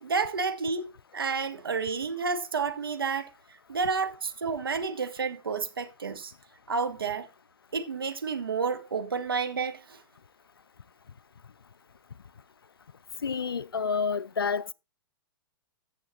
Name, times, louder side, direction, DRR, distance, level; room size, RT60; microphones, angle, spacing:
voice 1, 0.0-3.3 3.7-6.3 6.7-7.3 7.7-10.0, right 5 dB, 80° right, 1.2 m, -30 dB
voice 2, 13.2-14.7, left 5 dB, 85° left, 0.4 m, -29 dB
15.0 x 6.4 x 2.8 m
figure-of-eight pair, 105°, 12 cm